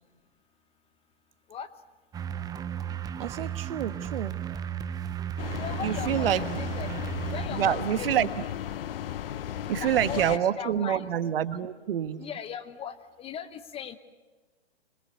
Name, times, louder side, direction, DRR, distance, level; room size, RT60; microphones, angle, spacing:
sound 1, 2.1-7.5, right 9 dB, 10° right, 0.7 m, -34 dB
voice 1, 3.2-4.4 5.8-6.4 7.5-8.3 9.7-12.2, right 10 dB, 55° right, 12 dB, 1.5 m, -27 dB
sound 2, 5.4-10.4, left 11 dB, 55° left, 0.9 m, -35 dB
voice 2, 5.5-6.3 6.6-6.9 7.3-8.1 9.6-11.1 12.2-14.0, left 8 dB, 15° left, 11 dB, 1.0 m, -38 dB
25.5 x 22.0 x 8.0 m, 1.3 s
hypercardioid pair, 125°, 34 cm